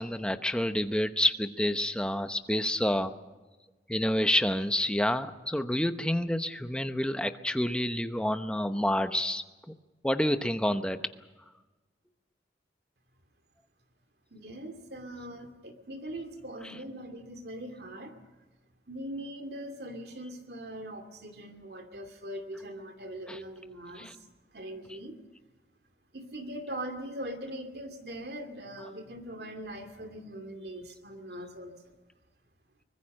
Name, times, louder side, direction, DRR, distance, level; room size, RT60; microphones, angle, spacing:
voice 1, 0.0-3.1 3.9-9.4 10.0-11.0 23.3-23.4 24.0-24.1, left 1 dB, 5° left, 9 dB, 0.9 m, -28 dB
voice 2, 14.3-18.2 18.9-24.3 24.5-25.2 26.1-31.8, right 1 dB, 60° right, 6 dB, 2.5 m, -41 dB
24.0 x 20.5 x 6.5 m, 1.2 s
head